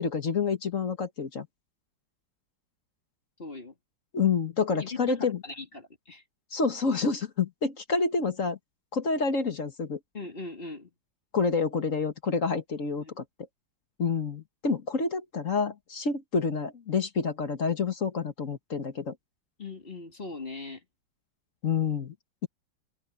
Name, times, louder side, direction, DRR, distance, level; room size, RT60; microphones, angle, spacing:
voice 1, 0.0-1.5 4.1-5.4 6.5-8.6 8.9-10.0 11.3-13.2 14.0-19.1 21.6-22.1, left 5 dB, 45° left, 1.7 m, -28 dB
voice 2, 3.4-3.7 4.8-6.2 10.1-10.9 13.0-13.2 19.6-20.8, left 3 dB, 30° left, 2.4 m, -39 dB
omnidirectional pair, 2.1 m